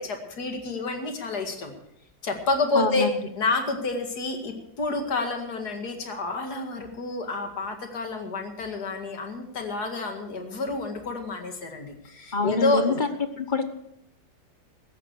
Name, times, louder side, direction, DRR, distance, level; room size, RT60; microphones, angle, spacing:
voice 1, 0.0-1.7 2.2-3.1 3.4-13.1, left 3 dB, 55° left, 4 dB, 2.5 m, -29 dB
voice 2, 2.7-3.1 12.3-13.1 13.4-13.7, left 3 dB, 35° left, 9 dB, 0.8 m, -25 dB
16.5 x 13.5 x 4.7 m, 0.75 s
omnidirectional pair, 2.1 m